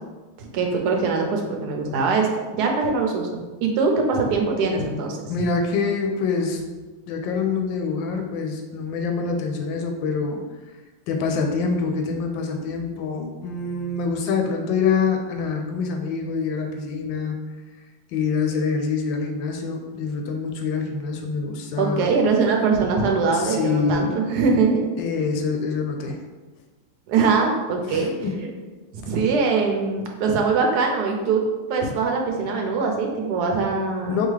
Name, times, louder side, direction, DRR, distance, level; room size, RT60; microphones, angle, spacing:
voice 1, 0.4-2.3 2.5-5.3 21.8-24.9 27.1-28.1 28.9-31.4 31.7-34.3, right 4 dB, 70° right, 1 dB, 1.0 m, -22 dB
voice 2, 5.3-6.6 7.1-10.4 11.1-17.4 18.1-22.1 23.3-24.2 25.0-26.2 27.9-28.3 34.1-34.3, left 5 dB, 75° left, 3 dB, 1.2 m, -25 dB
4.7 x 2.7 x 3.2 m, 1.2 s
omnidirectional pair, 2.3 m